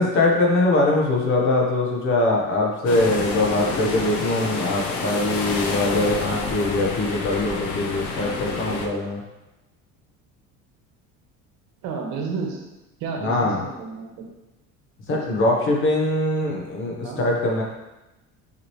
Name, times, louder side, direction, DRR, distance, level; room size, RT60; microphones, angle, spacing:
voice 1, 0.0-9.2 13.2-13.6 15.1-17.6, left 2 dB, 40° left, -1 dB, 1.2 m, -22 dB
sound 1, 2.9-8.9, left 3 dB, 70° left, 1.0 m, -29 dB
voice 2, 11.8-12.6 13.0-14.1 15.1-15.3 17.0-17.2, right 5 dB, 65° right, 1 dB, 1.3 m, -31 dB
6.4 x 5.0 x 3.1 m, 1.0 s
cardioid pair, 170°, 30 cm